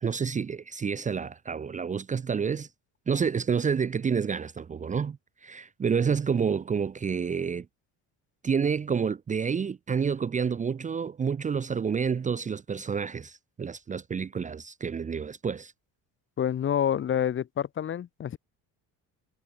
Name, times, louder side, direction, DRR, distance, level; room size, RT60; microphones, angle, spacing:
voice 1, 0.0-2.7 3.1-7.7 8.4-15.7, right 6 dB, 20° right, 1.0 m, -29 dB
voice 2, 16.4-18.4, left 9 dB, 30° left, 1.8 m, -28 dB
cardioid pair, 175°, 38 cm